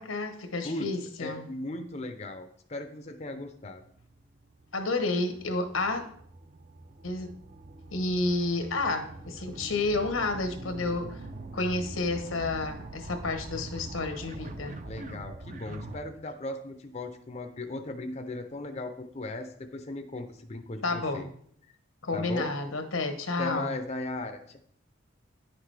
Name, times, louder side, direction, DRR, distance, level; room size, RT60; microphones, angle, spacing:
voice 1, 0.0-1.4 4.7-6.0 7.0-7.3 7.9-11.2 11.5-14.8 20.8-21.2 22.0-23.7, left 2 dB, 90° left, 6 dB, 1.1 m, -30 dB
voice 2, 1.2-3.8 14.8-21.3 22.1-22.5 23.4-24.6, left 2 dB, 35° left, 6 dB, 0.5 m, -37 dB
sound 1, 3.5-16.0, right 2 dB, 40° right, 0.6 m, -44 dB
9.9 x 5.8 x 3.3 m, 0.64 s
head